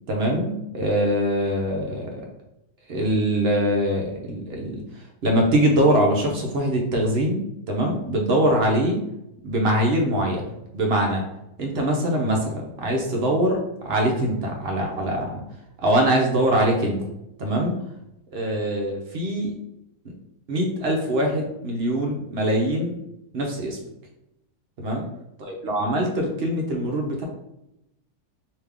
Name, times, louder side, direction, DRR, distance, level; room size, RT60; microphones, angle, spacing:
voice 1, 0.1-2.2 2.9-4.8 5.2-9.0 9.4-11.2 11.6-13.6 13.8-15.4 15.8-17.0 17.4-17.7 18.3-19.5 20.5-22.9 23.3-23.8 24.8-25.1 25.4-27.2, right 1 dB, 55° right, 0 dB, 0.7 m, -23 dB
3.4 x 2.8 x 3.5 m, 0.85 s
omnidirectional pair, 1.7 m